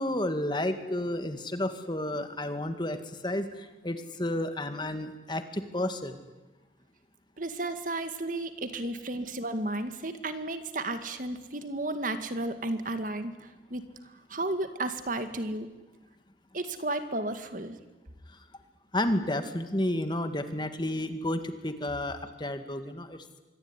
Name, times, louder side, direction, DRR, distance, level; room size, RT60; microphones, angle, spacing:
voice 1, 0.0-6.2 18.9-23.2, left 1 dB, 25° left, 8 dB, 2.0 m, -31 dB
voice 2, 7.4-13.8 14.3-15.7 16.5-17.8, right 2 dB, 45° right, 9 dB, 2.1 m, -33 dB
26.0 x 23.0 x 9.9 m, 1.1 s
head